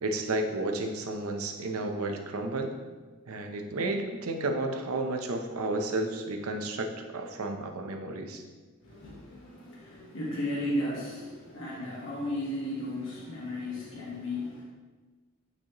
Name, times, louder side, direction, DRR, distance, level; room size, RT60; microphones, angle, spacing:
voice 1, 0.0-2.7 3.3-8.4, right 2 dB, 90° right, 4 dB, 0.7 m, -32 dB
voice 2, 8.8-14.6, left 1 dB, 65° left, -6 dB, 1.3 m, -35 dB
8.8 x 4.3 x 3.0 m, 1.3 s
head